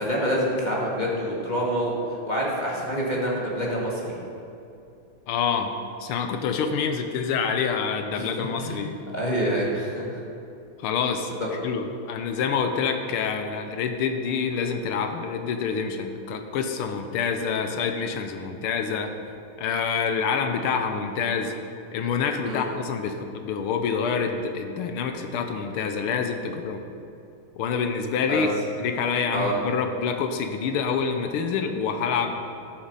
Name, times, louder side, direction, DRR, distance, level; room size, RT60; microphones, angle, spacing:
voice 1, 0.0-1.9 2.3-4.2 8.1-8.8 9.1-10.2 11.4-11.5 22.4-22.6 28.3-28.5 29.3-29.5, equal, 20° left, -4 dB, 1.8 m, -27 dB
voice 2, 5.3-9.0 10.8-11.4 11.6-19.1 19.6-21.5 21.9-26.8 27.6-28.5 28.8-32.4, left 6 dB, 85° left, 6 dB, 1.7 m, -27 dB
12.5 x 7.2 x 5.4 m, 2.7 s
omnidirectional pair, 2.4 m